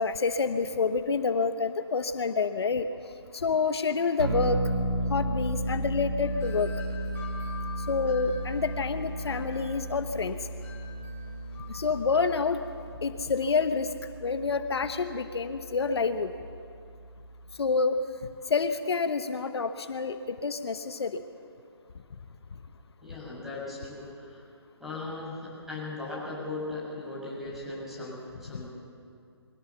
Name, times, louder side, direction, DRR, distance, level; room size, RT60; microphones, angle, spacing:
voice 1, 0.0-2.9 3.3-4.6 5.1-6.7 7.9-10.4 11.7-12.6 13.0-13.9 14.2-16.3 17.6-18.0 18.5-21.2 28.5-28.6, left 5 dB, 70° left, 9 dB, 1.1 m, -28 dB
sound 1, 4.2-17.6, right 1 dB, 75° right, 3.3 m, -35 dB
Wind chime, 6.2-12.9, left 5 dB, 15° left, 2.9 m, -47 dB
voice 2, 23.0-24.4 24.8-28.7, left 2 dB, ahead, -6 dB, 6.3 m, -38 dB
22.5 x 17.0 x 7.1 m, 2.3 s
hypercardioid pair, 150°, 14 cm